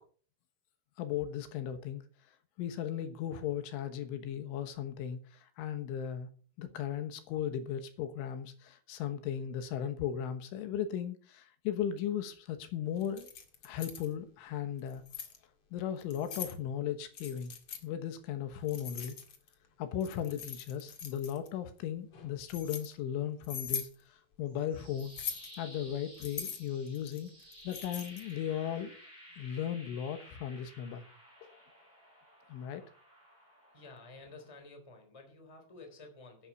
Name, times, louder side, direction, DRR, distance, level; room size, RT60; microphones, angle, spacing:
voice 1, 1.0-2.0 2.6-6.3 6.6-13.3 13.6-15.0 15.7-17.5 17.8-19.2 19.8-25.1 25.6-27.3 27.7-29.0 29.4-31.1 31.4-31.5 32.5-32.8, left 9 dB, 80° left, 3.6 m, -36 dB
Keys jangling, 13.0-14.1 14.8-15.4 16.0-16.6 17.1-17.8 18.7-19.5 20.0-21.5 22.1-22.9 23.4-23.9 25.0-25.6 26.2-28.3, left 6 dB, 55° left, 1.6 m, -41 dB
sound 1, 24.5-34.5, equal, 20° right, 6.6 m, -55 dB
voice 2, 33.7-36.5, left 3 dB, 10° left, 2.7 m, -52 dB
11.5 x 11.0 x 6.0 m
omnidirectional pair, 5.7 m